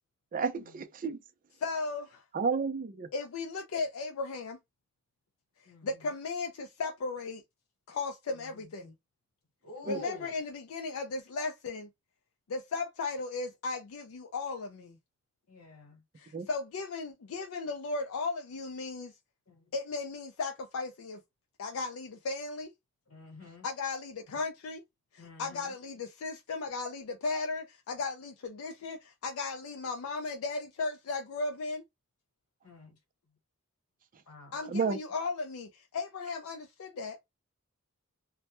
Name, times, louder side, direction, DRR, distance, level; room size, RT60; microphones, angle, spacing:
voice 1, 0.3-1.2 2.3-3.1 9.9-10.0 16.3-16.5 34.7-35.0, right 5 dB, 40° right, 0.4 m, -31 dB
voice 2, 1.6-2.2 3.1-4.6 5.8-7.4 7.9-8.9 9.8-11.9 12.5-15.0 16.2-19.1 19.7-21.2 21.6-22.7 23.6-24.8 25.1-31.8 34.5-37.2, left 3 dB, 70° left, 0.4 m, -36 dB
voice 3, 8.3-8.7 9.6-10.3 15.5-16.0 19.5-19.7 23.1-23.7 25.2-25.7 32.6-33.0 34.3-34.6, left 2 dB, 90° left, 1.0 m, -48 dB
2.1 x 2.1 x 2.9 m
head